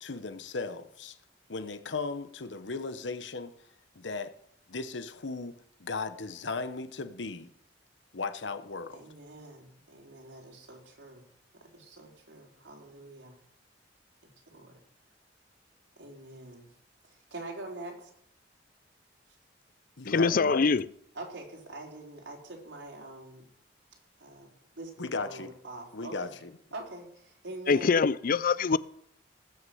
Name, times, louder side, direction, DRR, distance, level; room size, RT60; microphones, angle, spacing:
voice 1, 0.0-1.2 1.5-3.5 4.0-4.3 4.7-7.5 8.1-9.0 20.0-20.7 25.0-25.5 25.9-26.5, left 4 dB, 75° left, 0.9 m, -36 dB
voice 2, 8.9-11.2 11.5-13.4 14.5-14.8 16.0-16.7 17.0-18.1 21.1-23.4 24.2-24.5 24.8-26.3 26.7-28.0, right 2 dB, 80° right, 4.2 m, -44 dB
voice 3, 20.1-20.8 27.7-28.8, left 5 dB, 50° left, 0.5 m, -24 dB
19.5 x 6.5 x 7.8 m
head